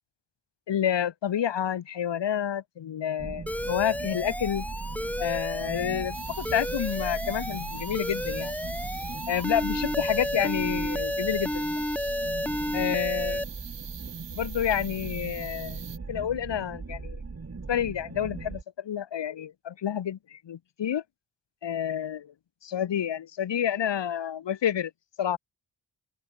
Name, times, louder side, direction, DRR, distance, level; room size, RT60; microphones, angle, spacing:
voice 1, 0.7-4.7 5.2-8.5 9.3-11.8 12.7-13.4 14.3-15.8 16.1-17.2 17.7-21.0 21.6-22.3 22.6-24.9 25.2-25.4, left 9 dB, 75° left, 1.0 m, -29 dB
sound 1, 3.2-18.6, right 4 dB, 35° right, 1.5 m, -39 dB
Alarm, 3.5-13.4, left 1 dB, 5° left, 0.5 m, -32 dB
sound 2, 6.1-16.0, right 9 dB, 75° right, 1.1 m, -44 dB
open air
cardioid pair, 50°, 44 cm